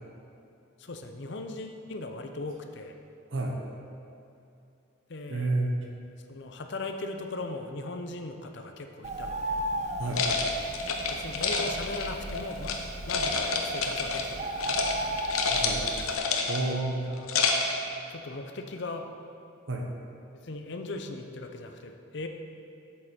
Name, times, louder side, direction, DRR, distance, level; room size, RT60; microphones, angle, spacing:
voice 1, 0.8-2.9 5.1-5.6 6.3-9.6 11.1-15.4 17.1-17.3 18.1-19.1 20.4-22.3, left 2 dB, 55° left, 5 dB, 0.6 m, -39 dB
voice 2, 5.3-5.8 10.0-10.2 15.5-15.9 16.5-17.1 19.7-19.9, right 2 dB, 60° right, 1 dB, 0.9 m, -30 dB
Bird, 9.0-16.2, right 1 dB, 35° right, 0.5 m, -36 dB
sound 1, 10.1-12.8 13.1-14.3 14.6-14.9 15.2-16.7 17.1-17.8, left 4 dB, 85° left, 0.8 m, -28 dB
8.1 x 7.5 x 4.4 m, 2.7 s
head